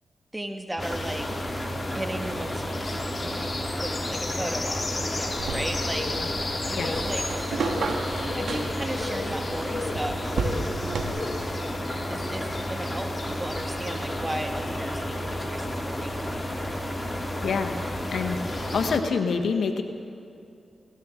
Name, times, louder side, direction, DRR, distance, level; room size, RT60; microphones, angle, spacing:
voice 1, 0.3-1.3 1.9-2.6 3.2-6.5 6.7-7.3 8.3-10.3 12.1-16.8, right 1 dB, 15° right, 4 dB, 1.8 m, -36 dB
sound 1, 0.8-19.0, left 3 dB, 45° left, 1.3 m, -34 dB
sound 2, 0.8-19.0, equal, 5° left, 2.1 m, -33 dB
sound 3, 5.4-11.1, right 4 dB, 80° right, 1.3 m, -33 dB
voice 2, 17.4-17.7 18.1-18.4 18.7-19.8, left 5 dB, 75° left, 7 dB, 1.1 m, -26 dB
19.0 x 17.5 x 3.7 m, 2.6 s
cardioid pair, 50°, 0 cm